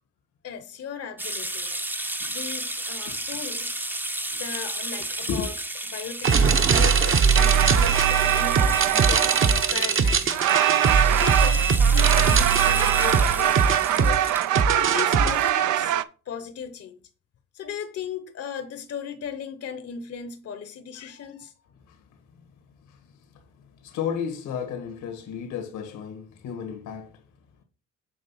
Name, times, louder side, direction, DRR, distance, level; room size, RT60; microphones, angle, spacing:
voice 1, 0.4-1.8 2.3-3.8 4.3-5.5 5.9-10.4 11.0-13.7 14.0-14.2 14.7-16.0 16.3-17.0 17.5-21.5, left 7 dB, 55° left, 0.8 m, -37 dB
sound 1, 1.2-15.5, right 1 dB, 5° right, 0.6 m, -33 dB
sound 2, 6.2-15.3, right 5 dB, 45° right, 0.9 m, -21 dB
sound 3, 7.4-10.0 10.3-16.0, right 13 dB, 75° right, 0.5 m, -23 dB
voice 2, 21.9-22.2 22.8-27.2, left 7 dB, 90° left, 1.6 m, -34 dB
7.7 x 3.4 x 5.6 m
cardioid pair, 90°, 30 cm